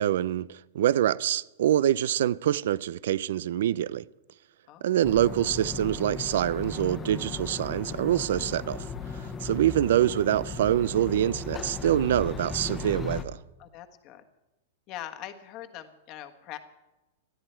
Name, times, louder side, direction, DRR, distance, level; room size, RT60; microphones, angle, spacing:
voice 1, 0.0-4.1 4.8-8.9 9.1-13.4, right 11 dB, 70° right, 0.5 m, -25 dB
sound 1, 5.0-13.2, left 4 dB, 20° left, 1.1 m, -37 dB
voice 2, 13.6-14.2 14.9-16.6, left 12 dB, 35° left, 1.4 m, -42 dB
21.0 x 13.0 x 4.5 m
supercardioid pair, 145°, 0 cm